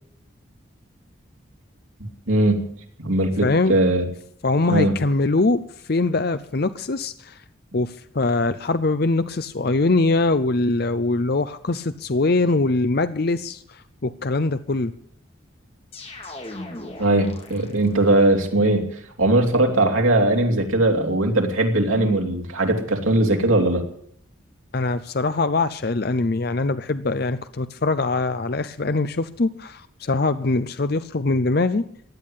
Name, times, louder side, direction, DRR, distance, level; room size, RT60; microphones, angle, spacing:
voice 1, 2.3-2.6 3.0-4.0 4.7-4.9 17.0-18.9 19.2-23.8, right 1 dB, 85° right, 2 dB, 3.2 m, -19 dB
voice 2, 3.4-3.7 4.4-5.6 5.9-7.4 7.7-14.9 22.0-22.2 24.7-31.8, left 3 dB, 50° left, 12 dB, 0.6 m, -22 dB
sound 1, 15.9-18.2, left 2 dB, 30° left, 2.8 m, -38 dB
16.0 x 10.5 x 8.5 m, 0.67 s
head